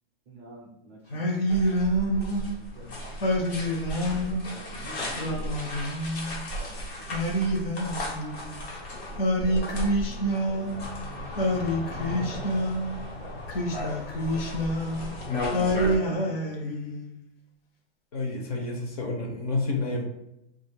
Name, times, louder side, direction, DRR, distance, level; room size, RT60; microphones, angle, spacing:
voice 1, 0.3-1.4 2.4-3.3 4.2-5.6 6.6-8.8 9.5-10.2 10.5-12.4 12.7-15.3 15.6-16.9, right 2 dB, 15° right, -6 dB, 0.4 m, -49 dB
Singing, 1.1-2.6 3.2-4.5 5.1-6.5 7.1-8.6 9.2-11.0 11.4-13.0 13.5-15.1 15.5-17.1, equal, 65° left, 0.8 m, -27 dB
sound 1, 1.5-16.0, left 1 dB, 85° left, 1.2 m, -35 dB
voice 2, 18.1-20.0, left 3 dB, 40° left, 0 dB, 0.5 m, -29 dB
2.4 x 2.4 x 3.2 m, 0.84 s
supercardioid pair, 175°, 31 cm